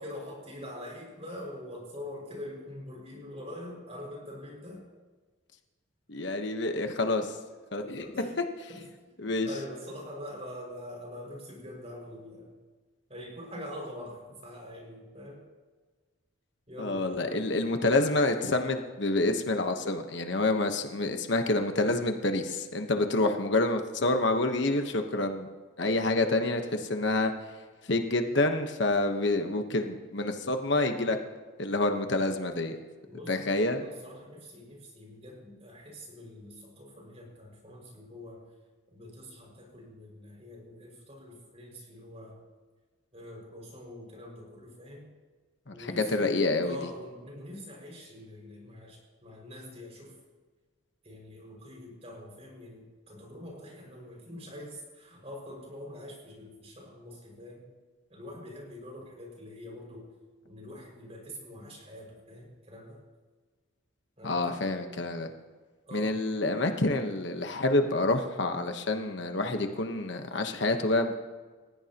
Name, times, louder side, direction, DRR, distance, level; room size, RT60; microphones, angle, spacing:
voice 1, 0.0-4.9 7.9-8.4 8.7-12.5 13.1-15.4 16.7-17.7 33.1-38.5 38.9-42.4 43.1-45.1 45.7-46.3 46.6-50.2 51.0-57.7 58.1-60.1 60.5-63.0 64.2-64.8 65.9-66.3, left 1 dB, 30° right, -1 dB, 5.8 m, -44 dB
voice 2, 6.1-7.4 7.7-8.3 9.2-9.5 16.8-25.5 25.8-27.3 27.9-31.2 31.6-32.8 33.3-33.8 45.7-46.8 64.2-65.3 65.9-71.1, left 2 dB, 60° left, 5 dB, 1.1 m, -28 dB
29.5 x 16.0 x 3.0 m, 1.4 s
head